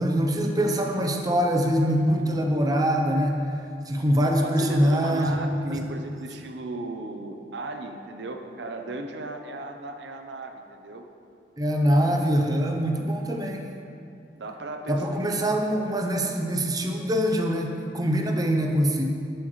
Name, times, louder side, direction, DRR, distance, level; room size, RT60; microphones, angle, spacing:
voice 1, 0.0-3.5 3.9-5.4 5.7-5.8 11.6-13.6 14.9-19.0, equal, 20° right, 2 dB, 0.7 m, -24 dB
voice 2, 4.2-11.1 14.3-15.3, right 2 dB, 75° right, 5 dB, 0.6 m, -36 dB
10.5 x 7.8 x 3.2 m, 2.4 s
head